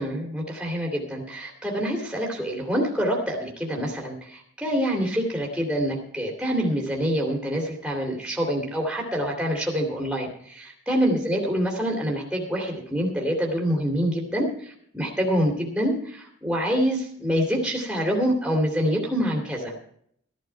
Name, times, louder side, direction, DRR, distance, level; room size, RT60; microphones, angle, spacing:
voice 1, 0.0-19.7, equal, 5° right, -1 dB, 2.6 m, -26 dB
15.5 x 11.5 x 4.6 m, 0.67 s
head